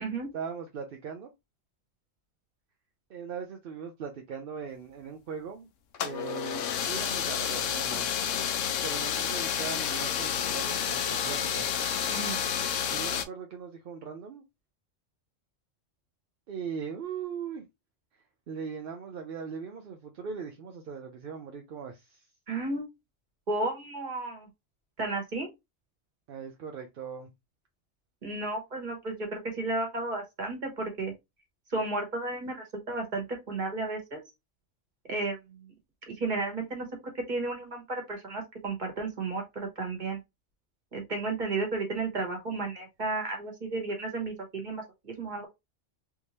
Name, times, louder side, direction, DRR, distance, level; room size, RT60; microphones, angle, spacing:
voice 1, 0.3-1.3 3.1-5.7 6.0-8.1 8.8-11.7 12.9-14.4 16.5-17.6 18.5-22.3 26.3-27.3, right 6 dB, 60° right, 0.7 m, -39 dB
sound 1, 5.9-13.2, left 8 dB, 90° left, 0.9 m, -30 dB
voice 2, 22.5-22.9 23.5-24.5 25.0-25.5 28.2-31.1 31.7-34.2 35.1-35.4 36.1-40.2 40.9-45.5, right 3 dB, 40° right, 1.5 m, -33 dB
3.5 x 2.7 x 3.1 m
omnidirectional pair, 1.3 m